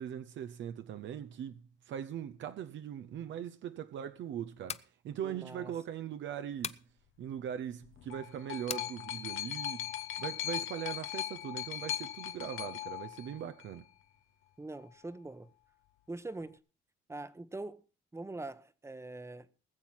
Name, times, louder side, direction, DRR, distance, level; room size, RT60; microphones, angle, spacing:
voice 1, 0.0-6.8 7.2-9.9 10.2-13.9, right 9 dB, 70° right, 0.7 m, -40 dB
sound 1, 4.5-4.9 6.6-6.9 8.7-8.9, left 6 dB, 30° left, 0.7 m, -39 dB
voice 2, 5.2-5.7 14.6-15.5 16.1-16.6 17.1-17.8 18.1-19.5, right 2 dB, 15° right, 0.9 m, -43 dB
sound 2, 7.8-13.8 14.7-14.8, left 12 dB, 80° left, 1.0 m, -39 dB
19.5 x 7.2 x 5.9 m
cardioid pair, 90°, 20 cm